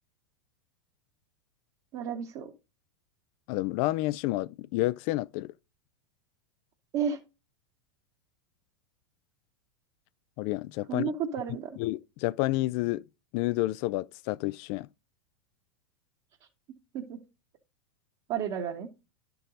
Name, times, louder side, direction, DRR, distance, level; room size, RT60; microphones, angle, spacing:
voice 1, 1.9-2.5 6.9-7.2 10.9-11.8 16.9-17.2 18.3-18.9, right 7 dB, 45° right, 1.2 m, -32 dB
voice 2, 3.5-5.5 10.4-11.1 11.8-13.0 13.3-14.9, left 18 dB, 45° left, 0.4 m, -29 dB
11.5 x 4.6 x 3.8 m
hypercardioid pair, 95°, 15 cm